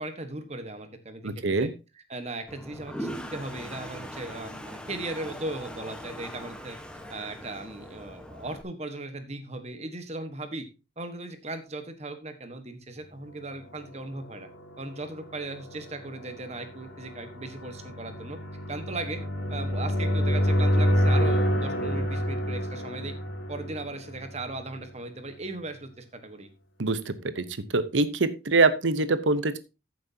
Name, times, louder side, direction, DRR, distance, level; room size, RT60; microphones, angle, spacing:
voice 1, 0.0-1.7 2.1-6.8 7.1-10.7 11.0-14.5 14.8-18.4 18.7-19.2 19.5-23.1 23.5-26.5, right 2 dB, 35° right, 8 dB, 1.4 m, -37 dB
voice 2, 1.2-1.7 26.8-27.4 27.7-29.6, right 3 dB, 80° right, 13 dB, 0.9 m, -24 dB
Toilet flush, 2.5-8.6, equal, 5° left, 1.1 m, -40 dB
sound 1, 14.0-24.8, equal, 85° left, 2.7 m, -28 dB
14.0 x 7.6 x 2.8 m, 0.28 s
head